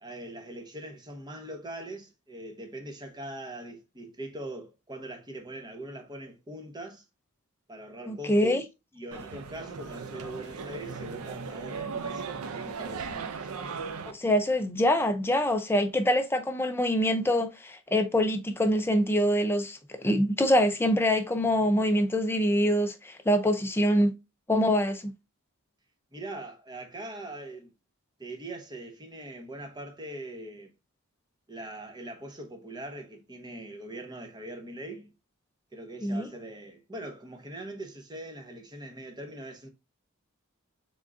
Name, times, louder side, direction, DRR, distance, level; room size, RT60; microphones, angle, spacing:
voice 1, 0.0-7.0 7.7-8.6 8.9-12.3 12.6-13.5 26.1-27.7 28.2-30.7 31.5-35.1 35.7-39.7, right 1 dB, 20° right, 0.9 m, -41 dB
voice 2, 8.1-8.6 14.1-24.1 24.5-25.0 36.0-36.3, equal, 10° left, 0.5 m, -25 dB
sound 1, 9.1-14.1, right 5 dB, 80° right, 0.6 m, -37 dB
3.8 x 3.6 x 3.7 m
head